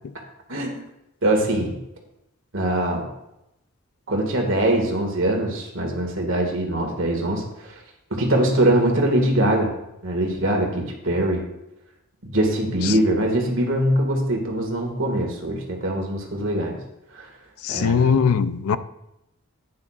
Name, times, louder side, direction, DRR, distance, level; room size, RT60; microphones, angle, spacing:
voice 1, 0.5-0.8 1.2-1.8 2.5-3.1 4.1-7.8 8.1-9.7 10.0-11.4 12.2-16.8 17.1-17.3 17.7-18.3, right 1 dB, 60° right, 1.8 m, -22 dB
voice 2, 17.6-18.8, left 6 dB, 80° left, 0.5 m, -20 dB
11.0 x 9.4 x 2.4 m
head